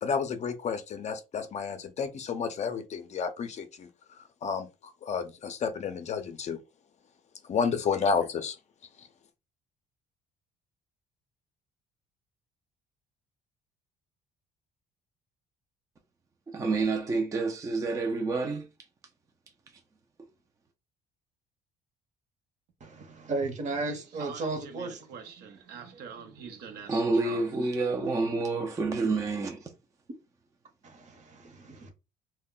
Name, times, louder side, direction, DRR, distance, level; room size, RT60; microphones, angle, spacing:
voice 1, 0.0-6.6 7.5-8.6 9.0-9.1, left 5 dB, 40° left, 0.5 m, -31 dB
voice 2, 16.5-18.7 26.9-29.7, right 3 dB, 20° right, 0.4 m, -28 dB
voice 3, 22.8-25.0 30.8-31.9, right 3 dB, 45° right, 0.9 m, -34 dB
voice 4, 23.7-28.4, right 7 dB, 70° right, 0.7 m, -46 dB
2.2 x 2.1 x 3.6 m
cardioid pair, 110°, 17 cm